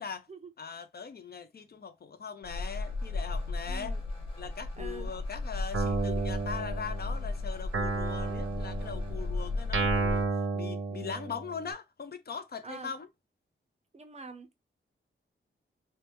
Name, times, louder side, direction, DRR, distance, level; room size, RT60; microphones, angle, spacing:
voice 1, 0.6-4.0 4.4-10.3 10.5-13.1, left 6 dB, 50° left, 0.5 m, -40 dB
sound 1, 2.4-10.3, left 3 dB, 25° left, 1.2 m, -35 dB
voice 2, 3.7-4.0 4.8-5.1 12.6-12.9 13.9-14.6, right 4 dB, 30° right, 0.5 m, -45 dB
Guitar, 5.7-7.2 7.7-11.6, right 3 dB, 85° right, 0.8 m, -32 dB
3.3 x 2.1 x 2.9 m
wide cardioid pair, 150°, 21 cm